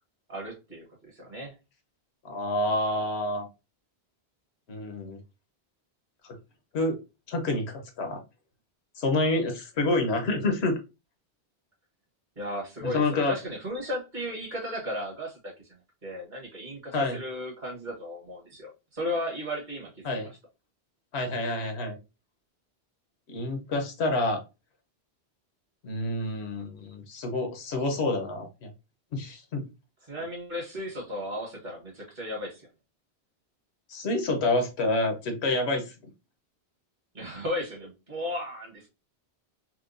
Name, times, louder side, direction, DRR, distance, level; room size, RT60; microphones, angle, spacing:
voice 1, 0.3-1.5 12.4-15.5 16.0-20.3 30.1-32.7 37.1-38.9, left 1 dB, 45° right, -2 dB, 1.4 m, -35 dB
voice 2, 2.2-3.5 4.7-5.2 6.2-6.4 6.7-7.0 7.3-8.2 9.0-10.8 12.8-13.3 16.9-17.2 20.0-20.3 21.1-22.0 23.3-24.4 25.8-28.7 29.1-29.7 33.9-35.9, left 2 dB, 75° left, 4 dB, 1.0 m, -28 dB
4.4 x 2.3 x 2.5 m, 0.27 s
omnidirectional pair, 1.1 m